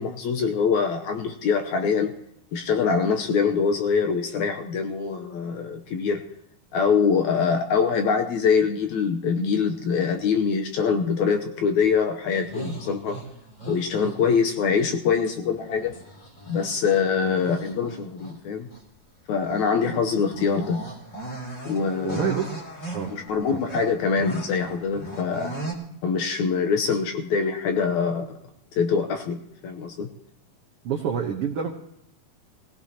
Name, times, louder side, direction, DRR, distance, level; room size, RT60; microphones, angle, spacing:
voice 1, 0.0-2.1 2.5-6.2 6.7-13.2 13.7-15.9 16.5-18.7 19.3-20.9 21.7-22.4 23.1-25.5 26.0-28.4 28.7-30.1, left 6 dB, 70° left, 5 dB, 1.9 m, -24 dB
sound 1, 12.3-14.8 15.4-18.4 18.7-18.8 19.4-25.7, right 2 dB, 20° left, 3.1 m, -38 dB
voice 2, 22.0-22.6 22.9-23.2 23.5-23.6 30.8-31.7, right 7 dB, 90° right, 2 dB, 1.2 m, -27 dB
20.5 x 17.0 x 2.9 m, 0.77 s
omnidirectional pair, 4.1 m